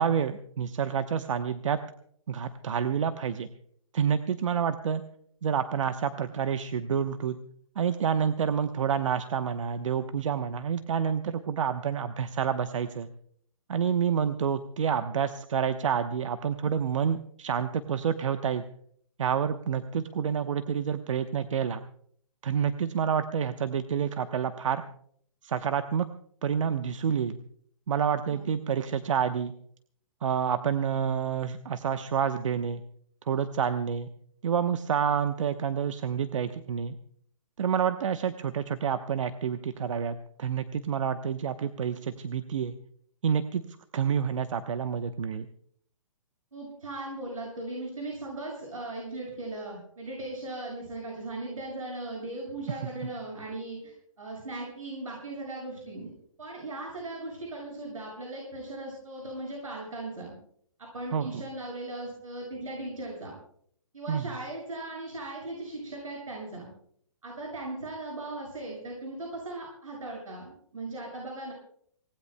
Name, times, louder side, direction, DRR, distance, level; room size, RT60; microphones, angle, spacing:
voice 1, 0.0-1.8 2.3-3.5 3.9-5.0 5.4-7.4 7.8-13.1 13.7-18.6 19.2-21.8 22.4-24.8 25.4-26.1 26.4-27.4 27.9-29.5 30.2-32.8 33.3-34.1 34.4-36.9 37.6-42.8 43.2-43.6 43.9-45.5 61.1-61.3 64.1-64.3, right 7 dB, 70° right, 9 dB, 1.0 m, -28 dB
voice 2, 46.5-56.1 56.4-60.3 60.9-63.3 63.9-66.7 67.2-71.5, right 2 dB, 85° right, -2 dB, 7.3 m, -38 dB
26.0 x 19.0 x 2.2 m, 0.62 s
hypercardioid pair, 140°, 17 cm